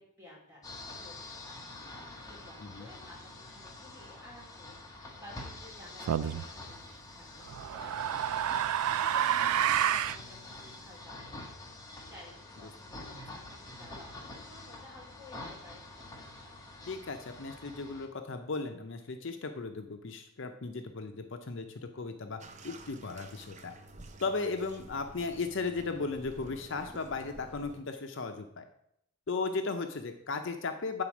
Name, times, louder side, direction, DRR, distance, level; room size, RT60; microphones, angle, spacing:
voice 1, 0.0-7.9 8.2-11.4 11.9-15.9, left 1 dB, 10° right, -4 dB, 3.1 m, -54 dB
sound 1, 0.6-18.1, left 2 dB, 15° left, 1.1 m, -47 dB
sound 2, 6.1-6.5 7.5-10.2, right 10 dB, 90° right, 0.3 m, -29 dB
voice 2, 16.9-23.7 24.2-28.6 29.3-31.0, left 4 dB, 55° left, 6 dB, 0.6 m, -36 dB
Bathtub (filling or washing), 22.4-27.8, right 2 dB, 30° right, 0.5 m, -51 dB
8.7 x 4.2 x 6.0 m, 0.76 s
head